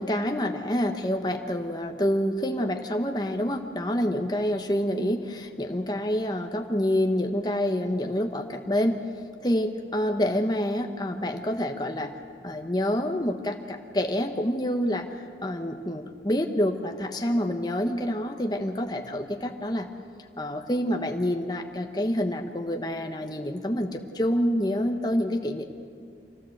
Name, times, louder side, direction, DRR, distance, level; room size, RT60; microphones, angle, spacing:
voice 1, 0.0-9.0 9.4-12.1 12.4-15.1 15.4-19.9 20.4-25.7, equal, 25° left, 4 dB, 1.2 m, -27 dB
25.5 x 17.0 x 7.9 m, 2.3 s
head